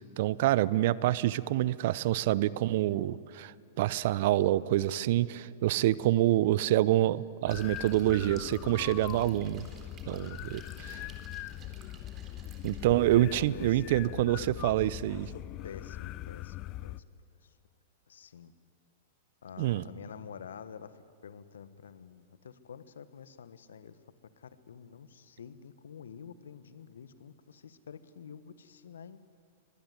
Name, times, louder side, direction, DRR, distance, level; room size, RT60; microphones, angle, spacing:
voice 1, 0.2-9.7 10.1-11.0 12.6-15.3 19.6-19.8, right 14 dB, 60° right, 20 dB, 0.7 m, -27 dB
sound 1, 7.5-17.0, left 14 dB, 40° left, 0.6 m, -41 dB
sound 2, 7.5-12.9, right 6 dB, 30° right, 3.9 m, -55 dB
voice 2, 12.8-14.3 15.1-16.6 16.8-17.0 17.4-17.5 18.1-18.5 19.4-24.0 24.4-29.2, left 7 dB, 75° left, 14 dB, 1.3 m, -48 dB
23.5 x 20.0 x 9.7 m, 2.4 s
hypercardioid pair, 100°, 0 cm